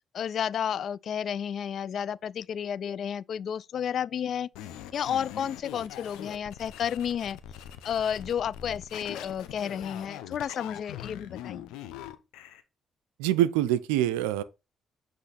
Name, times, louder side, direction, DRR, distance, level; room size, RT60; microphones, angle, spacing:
voice 1, 0.1-4.5 4.9-7.4 7.8-11.7, left 8 dB, 65° left, 0.3 m, -31 dB
sound 1, 4.5-12.6, left 11 dB, 80° left, 0.7 m, -43 dB
voice 2, 13.2-14.4, right 13 dB, 90° right, 0.4 m, -25 dB
8.0 x 3.1 x 4.0 m
hypercardioid pair, 50°, 0 cm